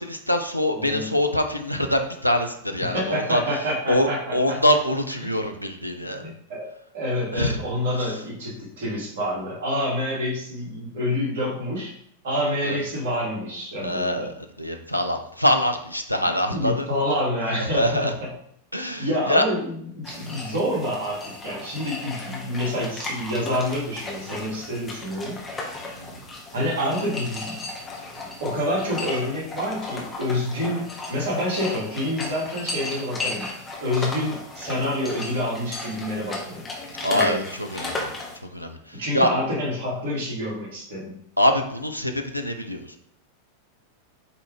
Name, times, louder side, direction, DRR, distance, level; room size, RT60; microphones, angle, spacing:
voice 1, 0.0-3.4 3.9-6.3 7.4-7.6 8.0-8.1 12.6-12.8 13.8-16.9 17.6-18.1 18.7-19.5 20.2-20.4 26.0-26.1 37.0-38.1 38.5-38.8 39.1-39.3 41.4-43.0, left 1 dB, 90° left, 5 dB, 0.7 m, -24 dB
voice 2, 0.7-1.1 2.8-4.6 6.2-11.9 12.2-14.3 16.4-18.3 19.0-25.4 26.5-27.6 28.4-33.5 33.8-36.6 37.1-37.4 38.9-41.1, left 1 dB, 55° right, -4 dB, 2.8 m, -27 dB
sound 1, 20.0-38.4, left 2 dB, 15° left, 1.7 m, -35 dB
8.4 x 4.0 x 3.6 m, 0.68 s
figure-of-eight pair, 90°, 0 cm